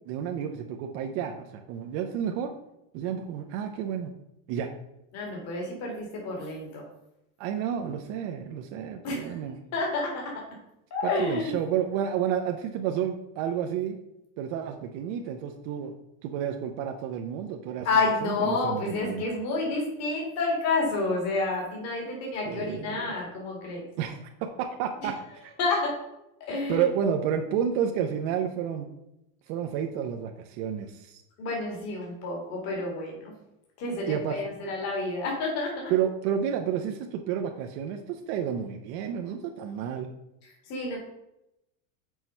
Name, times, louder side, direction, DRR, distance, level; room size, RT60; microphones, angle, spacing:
voice 1, 0.1-2.5 2.9-4.1 4.5-4.7 7.4-9.6 11.0-14.0 14.4-15.9 16.2-19.2 22.4-23.1 24.0-25.5 26.7-28.9 29.5-31.2 34.1-34.4 35.9-40.1, right 8 dB, 45° right, 3 dB, 0.6 m, -30 dB
voice 2, 5.1-6.8 9.0-9.4 9.7-10.4 10.9-11.6 17.8-23.8 25.6-25.9 26.5-26.8 31.4-33.3 33.8-35.9 40.7-41.0, left 3 dB, 40° left, -1 dB, 2.3 m, -29 dB
6.3 x 4.6 x 5.5 m, 0.86 s
cardioid pair, 170°, 41 cm